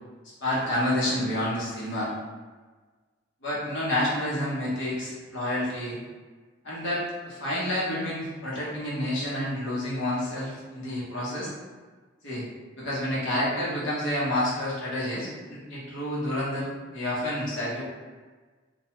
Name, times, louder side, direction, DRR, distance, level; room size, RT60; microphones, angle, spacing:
voice 1, 0.4-2.1 3.4-6.0 6.6-11.5 12.2-12.5 12.8-17.8, left 1 dB, 70° left, -7 dB, 0.9 m, -29 dB
2.3 x 2.2 x 2.9 m, 1.4 s
head